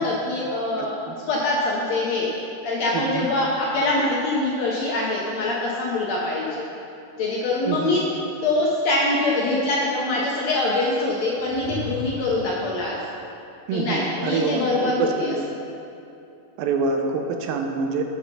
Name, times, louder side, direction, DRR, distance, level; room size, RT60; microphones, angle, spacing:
voice 1, 0.0-1.0 1.3-2.3 2.6-6.7 7.2-8.0 8.4-13.0 13.7-15.3, left 2 dB, 70° left, -4 dB, 1.7 m, -24 dB
voice 2, 0.8-1.2 2.9-3.3 7.7-8.0 13.7-15.5 16.6-18.0, right 4 dB, 85° right, 4 dB, 2.5 m, -26 dB
sound 1, 11.3-12.5, equal, 70° right, 3.2 m, -35 dB
10.0 x 7.3 x 5.3 m, 2.7 s
omnidirectional pair, 4.2 m